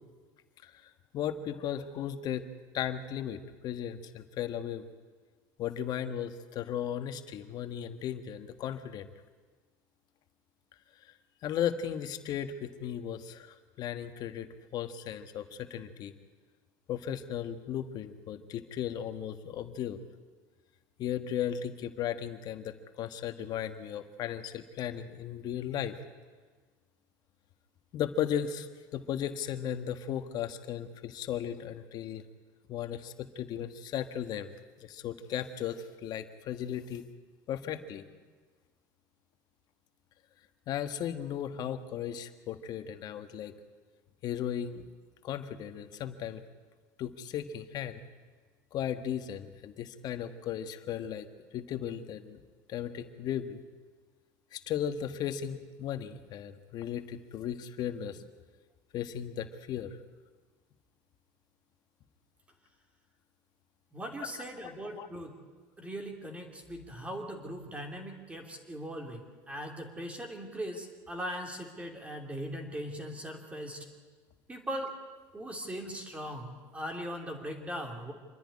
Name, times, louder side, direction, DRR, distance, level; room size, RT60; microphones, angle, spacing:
voice 1, 0.6-2.4 2.7-4.9 5.6-9.1 11.4-14.5 14.7-16.1 16.9-20.0 21.0-26.0 27.9-32.2 32.7-34.5 34.8-37.0 37.5-38.0 40.7-43.5 44.2-44.8 45.2-46.4 47.0-48.0 48.7-51.3 51.5-52.4 52.7-53.6 54.5-58.2 58.9-60.0 64.6-65.1, left 9 dB, 55° left, 9 dB, 1.5 m, -36 dB
voice 2, 63.9-65.3 65.8-73.9 74.5-74.9 75.3-78.1, equal, 15° right, 3 dB, 3.2 m, -39 dB
26.5 x 10.5 x 9.7 m, 1.4 s
supercardioid pair, 105°, 8 cm